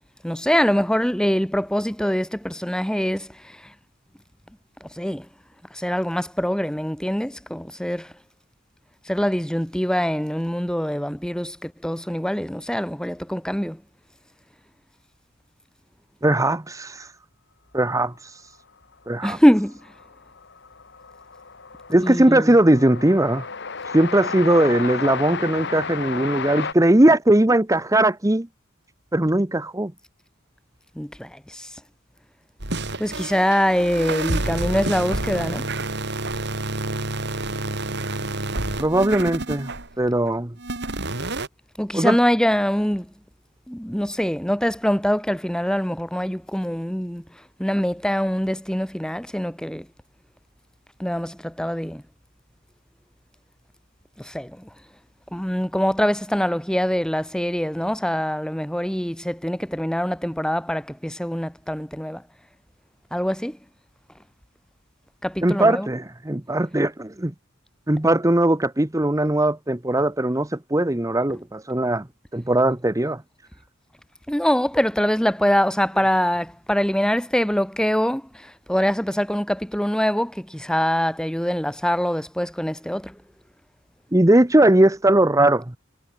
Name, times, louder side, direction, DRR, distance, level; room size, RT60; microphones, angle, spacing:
voice 1, 0.2-3.7 4.8-5.3 5.7-8.1 9.0-13.8 19.2-19.9 22.0-22.5 30.9-31.7 33.0-35.7 41.8-43.1 43.7-47.2 47.6-49.9 51.0-52.0 54.2-54.7 55.3-62.2 63.1-63.6 65.2-65.9 71.3-71.4 74.3-83.2, equal, 5° left, 1.2 m, -24 dB
voice 2, 16.2-17.1 17.7-18.1 19.1-19.4 21.9-23.5 23.9-28.5 29.1-29.9 38.8-39.7 40.0-40.5 41.9-42.2 65.4-67.3 67.9-72.1 72.3-73.2 84.1-85.8, right 1 dB, 15° right, 1.0 m, -19 dB
Train, 19.3-19.4 19.6-26.7, left 5 dB, 55° left, 2.3 m, -32 dB
sound 1, 32.6-40.1 40.6-41.5, right 2 dB, 55° right, 5.3 m, -28 dB
head